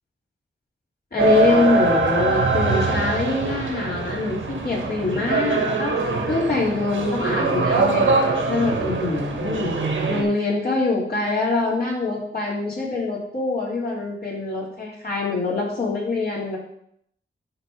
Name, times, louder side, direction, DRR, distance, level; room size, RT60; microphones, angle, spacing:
voice 1, 1.1-5.9 6.3-8.1 8.5-9.7 10.1-16.6, left 3 dB, 50° left, -5 dB, 3.3 m, -24 dB
sound 1, 1.2-10.2, right 3 dB, 80° right, 1.6 m, -23 dB
11.5 x 3.9 x 5.0 m, 0.70 s
wide cardioid pair, 90°, 20 cm